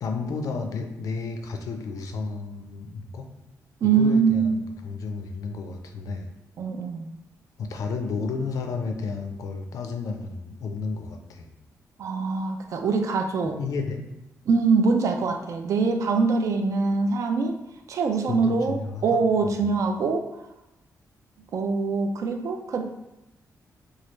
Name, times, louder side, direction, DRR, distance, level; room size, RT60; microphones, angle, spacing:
voice 1, 0.0-3.3 3.8-6.3 7.6-11.5 13.4-14.1 18.3-19.5, left 4 dB, 65° left, 4 dB, 0.4 m, -32 dB
voice 2, 3.8-4.7 6.6-7.1 12.0-13.6 14.5-17.5 17.9-20.2 21.5-23.0, right 4 dB, 55° right, 5 dB, 0.3 m, -23 dB
3.1 x 2.3 x 3.0 m, 0.93 s
wide cardioid pair, 165°, 6 cm